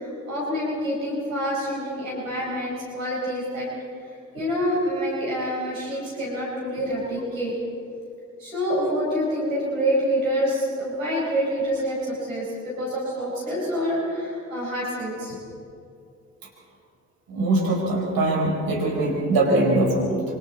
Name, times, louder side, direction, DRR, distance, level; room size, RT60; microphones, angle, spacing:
voice 1, 0.0-3.7 4.1-7.5 8.4-15.4, equal, 90° right, -5 dB, 4.8 m, -27 dB
voice 2, 17.3-20.2, right 2 dB, 60° right, -1 dB, 4.5 m, -22 dB
26.5 x 24.5 x 4.2 m, 2.5 s
figure-of-eight pair, 40°, 39 cm